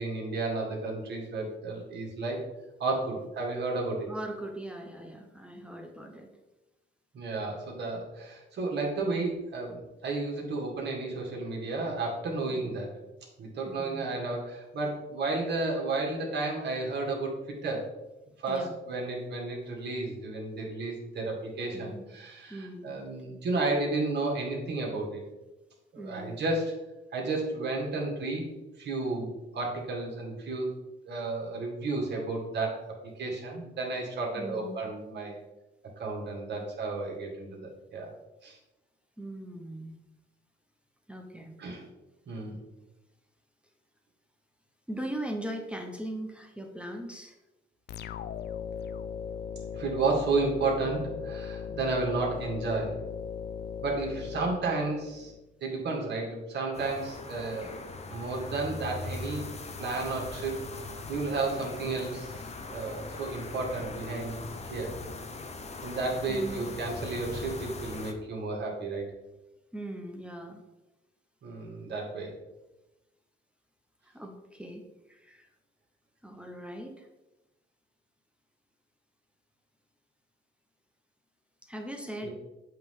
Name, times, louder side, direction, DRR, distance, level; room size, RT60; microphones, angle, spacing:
voice 1, 0.0-2.4 2.8-4.1 7.1-12.9 13.4-17.8 18.4-25.2 25.9-26.8 27.1-28.5 28.8-30.7 31.1-35.4 36.0-38.1 38.4-38.6 41.6-41.9 42.3-42.6 49.7-53.0 53.8-55.3 55.6-57.8 58.1-59.5 59.8-60.7 61.1-64.4 64.7-65.0 65.8-69.0 71.4-72.3 82.2-82.3, right 3 dB, 60° right, -1 dB, 1.9 m, -32 dB
voice 2, 4.1-6.3 12.5-12.7 13.6-14.0 18.5-18.8 21.7-22.0 22.5-22.9 26.0-26.5 34.4-34.8 39.2-40.0 41.1-41.6 44.9-47.4 51.7-51.9 66.3-66.7 69.7-70.6 74.0-75.5 76.2-77.1 81.6-82.3, right 1 dB, 5° right, 3 dB, 0.8 m, -40 dB
sound 1, 47.9-55.4, left 7 dB, 55° left, 0.4 m, -38 dB
sound 2, 56.7-68.1, left 3 dB, 35° left, 0.8 m, -40 dB
7.9 x 3.3 x 3.6 m, 1.0 s
cardioid pair, 90°, 20 cm